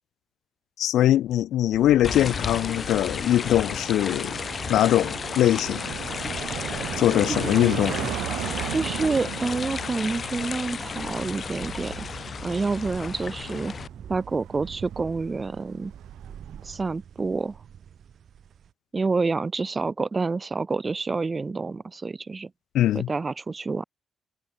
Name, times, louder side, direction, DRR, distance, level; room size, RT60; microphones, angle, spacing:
voice 1, 0.8-4.4 4.7-5.9 7.0-8.1 22.7-23.1, left 12 dB, 80° left, 0.3 m, -22 dB
sound 1, 1.7-16.7, right 15 dB, 90° right, 3.6 m, -38 dB
sound 2, 2.0-13.9, left 6 dB, 40° left, 2.9 m, -33 dB
sound 3, 5.8-18.7, right 8 dB, 60° right, 4.9 m, -45 dB
voice 2, 8.7-13.7 14.1-15.9 16.6-17.6 18.9-22.5 22.9-23.8, right 4 dB, 30° right, 0.9 m, -28 dB
cardioid pair, 90°, 0 cm